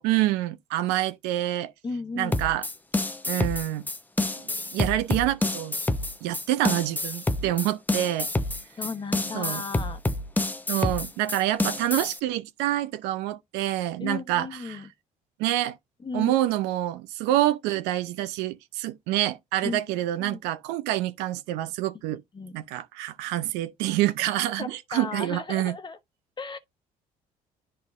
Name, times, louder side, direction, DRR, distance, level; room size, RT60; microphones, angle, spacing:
voice 1, 0.0-1.7 2.2-2.6 3.3-3.8 4.4-5.8 6.2-8.3 9.3-9.6 10.7-14.8 15.4-15.8 16.1-22.2 22.5-25.7, right 14 dB, 85° right, 0.7 m, -27 dB
voice 2, 1.8-2.4 8.8-10.0 14.0-14.9 16.0-16.4 19.6-19.8 20.2-20.4 22.1-22.6 24.6-26.0 26.4-26.6, left 4 dB, 30° left, 1.0 m, -35 dB
sound 1, 2.3-12.2, left 2 dB, 10° left, 0.7 m, -28 dB
10.5 x 3.7 x 2.5 m
supercardioid pair, 80°, 17 cm